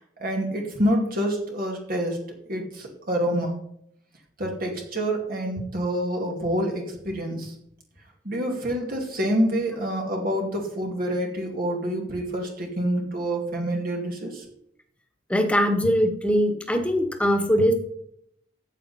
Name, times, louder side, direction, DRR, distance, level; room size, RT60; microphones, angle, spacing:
voice 1, 0.2-2.2 2.5-3.5 4.4-7.5 8.2-14.4, equal, 50° right, 0 dB, 2.5 m, -27 dB
voice 2, 15.3-17.7, equal, 5° left, 5 dB, 1.6 m, -21 dB
14.0 x 8.7 x 4.3 m, 0.71 s
head